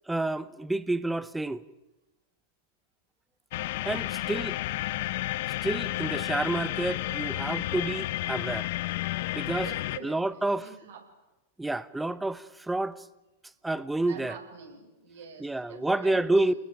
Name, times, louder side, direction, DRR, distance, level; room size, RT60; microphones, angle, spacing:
voice 1, 0.1-1.6 3.8-4.6 5.6-8.7 9.3-9.7 10.0-10.7 11.6-13.0 13.6-14.4 15.4-16.5, right 2 dB, 5° right, 1.1 m, -29 dB
sound 1, 3.5-10.0, left 16 dB, 60° left, 0.9 m, -31 dB
voice 2, 3.9-4.7 9.6-11.0 14.1-16.5, right 5 dB, 75° right, 7.4 m, -47 dB
29.0 x 21.0 x 9.4 m
hypercardioid pair, 100°, 0 cm